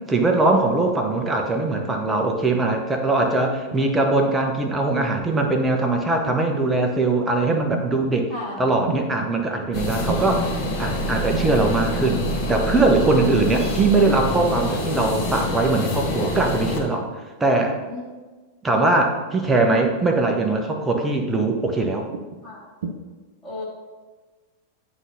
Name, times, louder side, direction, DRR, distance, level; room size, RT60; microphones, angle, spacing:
voice 1, 0.1-8.3 8.6-17.1 17.4-17.8 18.6-22.1, right 2 dB, 15° right, 2 dB, 1.0 m, -21 dB
sound 1, 3.4-3.8 4.8-5.2 6.2-6.7 7.7-8.1 8.9-9.3 10.0-10.4 11.3-11.6 12.8-13.1 14.1-14.4 15.3-15.6 16.4-16.7 17.7-18.0 18.9-19.2 20.1-20.4 20.9-21.2 22.1-22.4 22.8-22.9, right 5 dB, 60° right, 0.8 m, -35 dB
voice 2, 8.3-8.7 17.9-18.0 22.4-22.6 23.4-23.6, left 2 dB, 5° left, -12 dB, 1.9 m, -33 dB
sound 2, 9.7-16.8, left 1 dB, 35° left, 1.8 m, -26 dB
11.0 x 3.9 x 2.7 m, 1.3 s
figure-of-eight pair, 90°, 0 cm